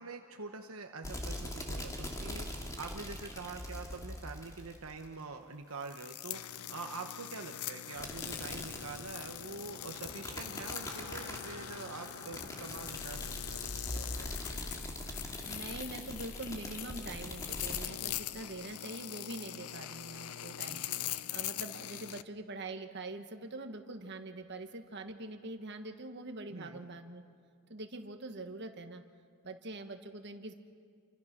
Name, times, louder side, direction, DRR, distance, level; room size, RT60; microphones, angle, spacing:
voice 1, 0.0-14.4 20.7-21.0 26.5-26.9, right 4 dB, 70° right, 4 dB, 1.1 m, -45 dB
sound 1, 1.0-5.2 8.0-17.9, left 1 dB, 15° left, 2.3 m, -43 dB
sound 2, 5.8-22.2, left 12 dB, 80° left, 0.6 m, -42 dB
sound 3, 9.3-17.4, left 1 dB, 45° left, 4.1 m, -54 dB
voice 2, 15.4-20.8 21.3-27.2 27.7-29.0 29.4-30.5, right 2 dB, 50° right, 5 dB, 1.6 m, -44 dB
28.5 x 24.5 x 6.1 m, 2.2 s
head